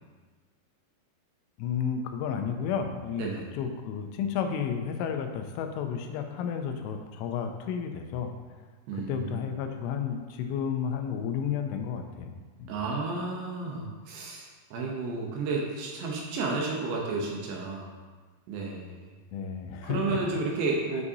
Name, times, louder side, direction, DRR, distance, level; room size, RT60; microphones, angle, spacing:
voice 1, 1.6-8.3 8.9-12.7 19.3-20.2 20.9-21.0, left 7 dB, 90° left, 5 dB, 3.1 m, -32 dB
voice 2, 3.2-3.5 8.9-9.4 12.7-14.5 14.7-17.9 18.5-19.1 19.8-21.0, right 3 dB, 75° right, -2 dB, 2.7 m, -32 dB
9.4 x 5.3 x 2.8 m, 1.4 s
omnidirectional pair, 5.4 m